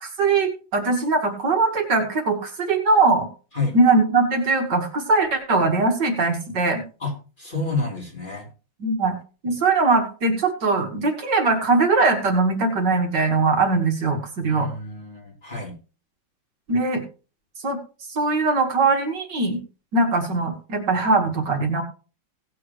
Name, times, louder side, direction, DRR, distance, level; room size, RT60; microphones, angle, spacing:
voice 1, 0.0-3.3 3.7-6.8 8.8-9.1 9.4-14.7 16.7-17.0 17.6-17.8 18.1-19.6 19.9-21.8, right 3 dB, 60° right, 3 dB, 2.2 m, -21 dB
voice 2, 7.0-8.5 14.5-15.7, left 3 dB, 25° left, -2 dB, 3.9 m, -29 dB
18.0 x 7.7 x 3.1 m, 0.35 s
omnidirectional pair, 2.1 m